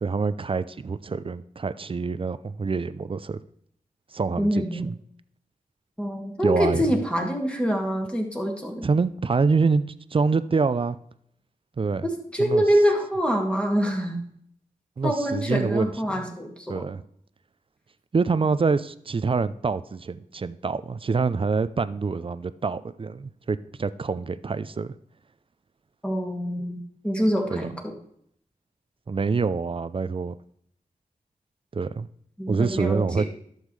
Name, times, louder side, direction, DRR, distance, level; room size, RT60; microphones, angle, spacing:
voice 1, 0.0-3.4 4.1-5.0 6.4-6.8 8.8-11.0 11.8-12.1 12.4-12.6 15.0-16.3 16.7-17.0 18.1-24.9 27.5-27.7 29.1-30.4 31.7-32.1 32.5-33.3, right 4 dB, 40° right, 0.5 m, -26 dB
voice 2, 4.4-4.9 6.0-8.9 12.0-14.2 15.0-16.9 26.0-27.9 32.4-33.3, equal, 5° left, 2.0 m, -25 dB
11.5 x 7.2 x 3.2 m
cardioid pair, 65°, 15 cm